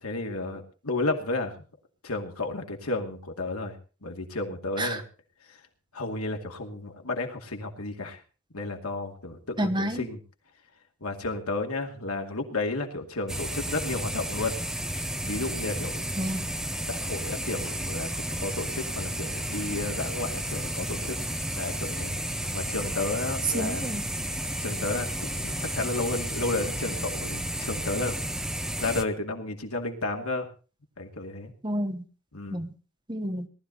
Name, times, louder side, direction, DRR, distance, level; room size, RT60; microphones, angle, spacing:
voice 1, 0.0-1.6 2.0-3.8 4.0-5.0 5.5-5.6 5.9-8.2 8.5-10.2 11.0-14.5 15.2-16.0 16.9-21.2 21.5-22.2 22.5-23.9 24.6-28.2 28.6-30.5 31.0-31.5 32.3-32.6, left 2 dB, 90° left, 3 dB, 2.4 m, -32 dB
voice 2, 9.6-10.1 16.2-16.5 23.5-24.0 31.6-32.0 32.5-32.7 33.1-33.5, right 1 dB, 20° right, 7 dB, 1.3 m, -30 dB
sound 1, 13.3-29.0, right 1 dB, ahead, 0.7 m, -32 dB
19.0 x 13.0 x 4.1 m, 0.35 s
head